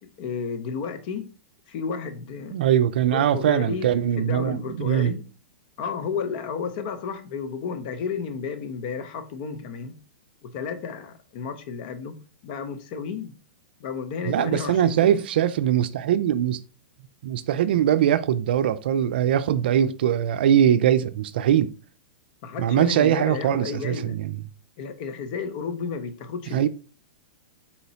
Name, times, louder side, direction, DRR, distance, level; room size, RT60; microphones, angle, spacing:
voice 1, 0.0-1.3 1.7-2.6 3.1-3.9 4.2-5.2 5.8-10.0 10.4-12.2 12.4-13.3 13.8-15.2 22.4-24.2 24.8-26.7, left 6 dB, 50° left, 0.8 m, -32 dB
voice 2, 2.5-5.1 14.3-16.6 17.2-21.7 22.6-24.3 26.5-26.7, right 10 dB, 65° right, 0.4 m, -22 dB
4.3 x 4.0 x 2.8 m
hypercardioid pair, 110°, 6 cm